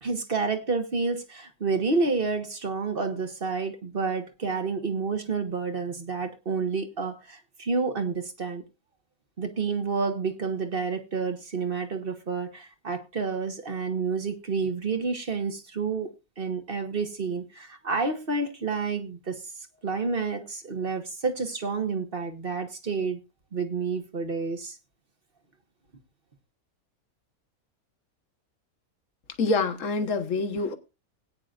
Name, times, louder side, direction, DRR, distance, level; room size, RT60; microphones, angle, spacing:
voice 1, 0.0-8.6 9.4-16.1 16.4-19.4 19.8-23.2 23.5-24.8, right 4 dB, 40° right, 1.5 m, -29 dB
voice 2, 29.4-30.8, left 3 dB, 60° left, 1.6 m, -26 dB
19.5 x 9.2 x 2.5 m
omnidirectional pair, 1.6 m